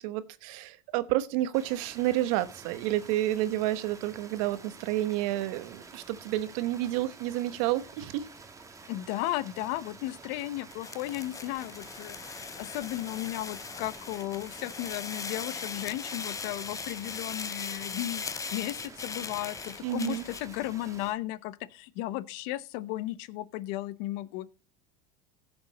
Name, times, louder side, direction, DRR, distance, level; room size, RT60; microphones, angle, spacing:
voice 1, 0.0-8.3 19.8-20.2, right 15 dB, 70° right, 1.1 m, -30 dB
sound 1, 1.5-21.1, right 4 dB, 15° right, 1.5 m, -50 dB
voice 2, 8.9-24.5, left 16 dB, 65° left, 0.9 m, -35 dB
sound 2, 10.7-20.5, left 5 dB, 15° left, 0.7 m, -39 dB
16.0 x 7.0 x 4.1 m
supercardioid pair, 115°, 19 cm